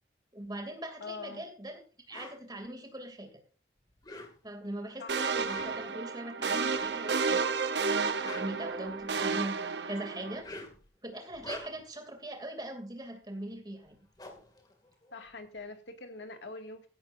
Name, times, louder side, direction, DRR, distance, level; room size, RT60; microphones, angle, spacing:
voice 1, 0.3-1.8 2.1-3.3 4.4-7.4 7.9-9.6 9.9-10.6 11.0-14.0, right 1 dB, 20° right, 2.7 m, -41 dB
voice 2, 1.0-1.5 5.0-5.3 15.1-16.9, left 3 dB, 85° left, 2.1 m, -44 dB
sound 1, 2.1-2.4 3.9-4.6 5.3-5.9 6.7-7.0 8.0-9.2 10.2-10.9 11.3-12.0 13.5-13.6 13.8-15.5, left 2 dB, 20° left, 2.4 m, -47 dB
sound 2, 5.1-10.4, right 5 dB, 75° right, 0.9 m, -31 dB
15.5 x 13.0 x 2.6 m
head